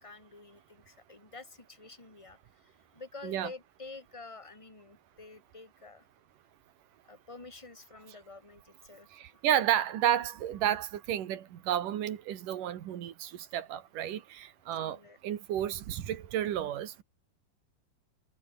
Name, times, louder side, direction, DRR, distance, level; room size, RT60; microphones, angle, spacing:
voice 1, 0.0-6.0 7.0-9.4 12.5-12.6 14.7-15.2, left 3 dB, 10° left, 2.0 m, -49 dB
voice 2, 9.4-15.0 15.2-17.0, right 11 dB, 60° right, 2.7 m, -31 dB
omnidirectional pair, 5.3 m